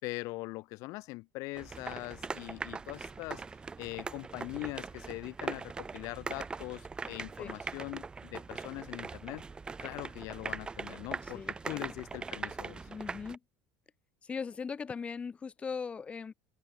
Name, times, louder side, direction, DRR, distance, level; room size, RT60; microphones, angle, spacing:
voice 1, 0.0-3.4 3.8-9.4 9.8-12.9, left 23 dB, 60° left, 4.6 m, -42 dB
sound 1, 1.5-13.4, right 4 dB, 15° right, 0.7 m, -41 dB
voice 2, 11.3-11.9 12.9-13.4 14.2-16.3, left 5 dB, 20° left, 3.2 m, -39 dB
cardioid pair, 150°, 6 cm